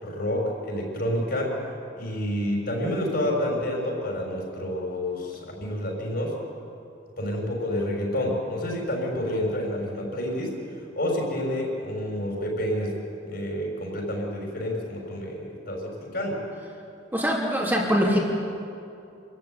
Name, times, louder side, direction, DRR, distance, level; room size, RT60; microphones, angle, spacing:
voice 1, 0.0-1.5 2.0-6.3 7.2-10.6 10.9-13.0 13.2-16.4, left 1 dB, 55° left, 0 dB, 6.5 m, -29 dB
voice 2, 17.1-18.2, equal, 10° right, -3 dB, 3.1 m, -23 dB
26.5 x 14.5 x 9.8 m, 2.5 s
head